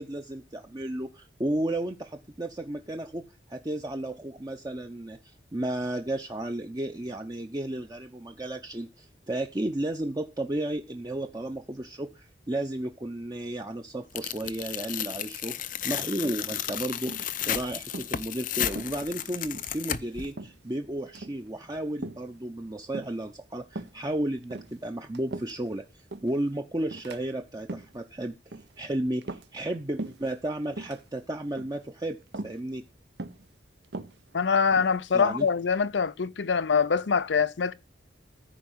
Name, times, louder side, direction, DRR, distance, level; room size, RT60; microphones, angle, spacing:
voice 1, 0.0-3.2 3.5-28.3 28.8-32.2 32.4-32.8 35.1-35.5, right 1 dB, 20° right, 0.8 m, -33 dB
Tearing, 14.2-20.3, left 10 dB, 50° left, 0.6 m, -33 dB
sound 1, 16.2-16.7 17.1-17.4 17.8-18.1 18.7-19.3 19.5-19.8 20.4-20.7 21.1-21.4 22.0-22.3 22.9-23.3 23.7-24.0 24.4-25.7 26.1-26.4 26.9-27.2 27.6-28.0 28.5-28.8 29.2-29.7 30.0-30.3 30.7-31.0 31.6-31.9 32.3-32.6 33.2-33.5 33.8-35.0, right 2 dB, 65° right, 1.0 m, -39 dB
voice 2, 34.3-37.7, left 6 dB, 90° left, 0.6 m, -24 dB
14.0 x 4.7 x 8.0 m
head